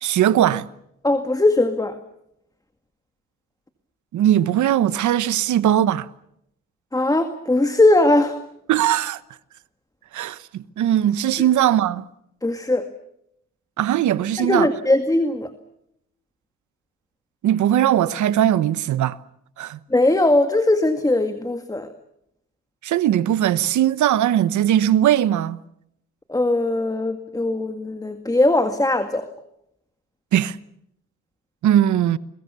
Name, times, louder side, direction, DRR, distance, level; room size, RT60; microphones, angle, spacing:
voice 1, 0.0-0.7 4.1-6.1 8.7-9.2 10.1-12.0 13.8-14.7 17.4-19.2 19.6-19.8 22.8-25.6 30.3-30.6 31.6-32.2, right 11 dB, 75° right, 1.1 m, -19 dB
voice 2, 1.0-2.0 6.9-8.4 12.4-12.9 14.4-15.5 19.9-21.9 26.3-29.3, left 2 dB, 10° left, 2.0 m, -19 dB
29.5 x 22.5 x 6.9 m
cardioid pair, 90°, 30 cm